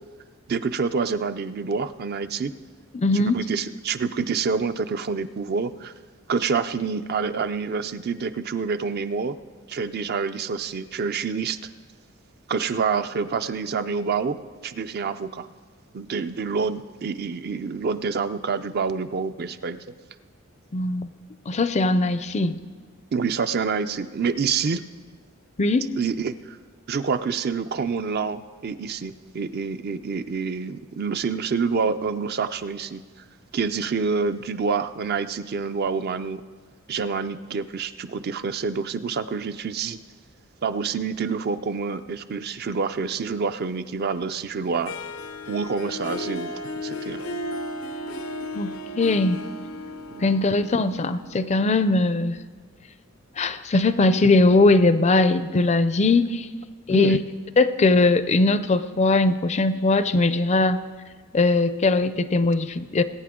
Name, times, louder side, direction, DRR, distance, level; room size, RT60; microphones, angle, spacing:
voice 1, 0.5-2.5 3.1-5.9 6.3-9.4 9.7-11.6 12.5-14.4 14.6-15.5 15.9-19.8 23.1-24.8 26.0-26.6 26.9-33.0 33.5-36.4 36.9-40.0 40.6-44.9 45.5-46.5 46.8-47.2 50.1-50.2 54.2-54.3 56.9-57.2, right 5 dB, 50° right, 11 dB, 0.5 m, -27 dB
voice 2, 2.9-3.4 20.7-21.1 21.5-22.6 25.6-26.0 48.5-49.4 50.2-52.4 53.4-56.5 56.9-57.2 57.6-60.8 61.3-63.0, left 2 dB, 30° left, 13 dB, 0.4 m, -20 dB
Harp, 44.9-51.7, left 1 dB, 90° left, 0.7 m, -34 dB
20.5 x 9.2 x 3.7 m, 1.5 s
head